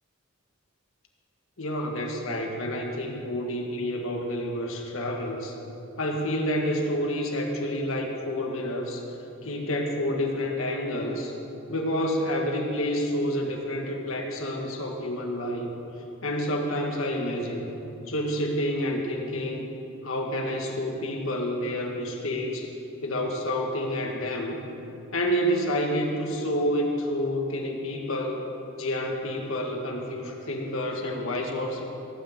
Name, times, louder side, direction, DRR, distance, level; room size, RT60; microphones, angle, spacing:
voice 1, 1.6-5.5 6.0-9.0 9.4-11.3 11.7-15.7 16.2-17.7 18.1-19.6 20.0-22.7 23.0-24.6 25.1-28.5 28.8-31.8, equal, 70° left, 1 dB, 1.7 m, -29 dB
17.0 x 6.1 x 7.9 m, 2.9 s
head